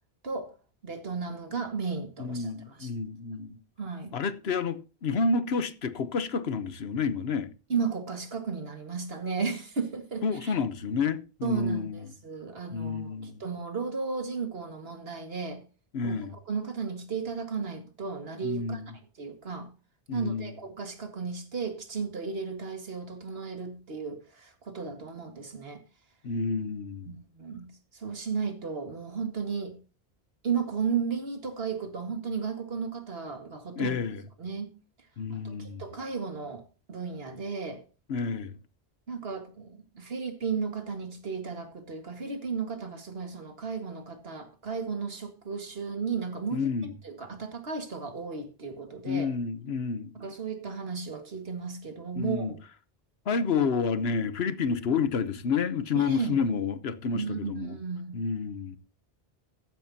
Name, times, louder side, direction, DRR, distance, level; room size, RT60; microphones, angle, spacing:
voice 1, 0.2-0.6 0.8-2.9 3.8-4.1 7.7-10.5 11.4-15.6 16.0-18.8 19.2-19.7 20.1-25.8 27.1-29.8 30.4-34.0 34.4-34.7 35.3-36.6 36.9-37.8 39.1-46.7 47.0-49.3 50.1-52.6 55.9-56.4 57.1-58.2, right 5 dB, 65° right, 2.1 m, -34 dB
voice 2, 2.2-3.6 4.1-7.5 10.2-12.1 12.7-13.4 15.9-16.3 18.4-18.9 20.1-20.6 26.2-27.2 33.8-34.2 35.2-35.8 38.1-38.6 46.5-46.9 49.1-50.2 52.2-52.5 53.3-57.8 58.1-58.8, left 5 dB, 75° left, 1.1 m, -29 dB
14.5 x 10.5 x 2.8 m
omnidirectional pair, 1.1 m